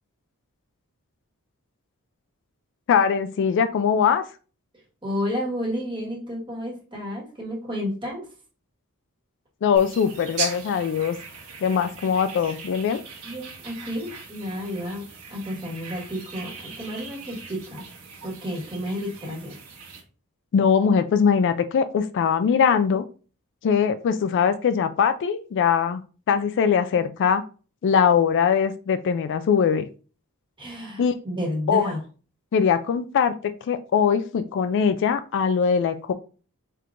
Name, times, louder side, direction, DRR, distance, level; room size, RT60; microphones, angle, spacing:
voice 1, 2.9-4.3 9.6-11.2 11.6-13.0 20.5-23.1 23.6-26.0 26.3-27.4 27.8-29.9 31.0-31.1 31.7-31.8 32.5-36.1, left 7 dB, 55° left, 11 dB, 0.3 m, -21 dB
voice 2, 5.0-8.3 13.2-17.8 18.2-19.5 30.6-32.0, equal, 20° right, -3 dB, 1.4 m, -31 dB
sound 1, 9.8-20.0, right 5 dB, 85° right, 1.3 m, -39 dB
4.5 x 3.7 x 2.4 m, 0.37 s
head